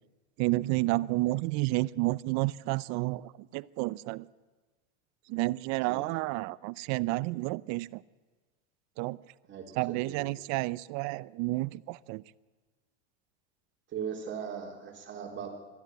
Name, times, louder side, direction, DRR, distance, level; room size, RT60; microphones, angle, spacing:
voice 1, 0.4-4.3 5.3-8.0 9.0-9.2 9.8-12.2, right 20 dB, 50° right, 20 dB, 0.6 m, -30 dB
voice 2, 9.5-10.3 13.9-15.5, right 7 dB, 30° right, 1 dB, 3.6 m, -39 dB
21.0 x 13.5 x 9.2 m, 1.3 s
supercardioid pair, 120°, 35 cm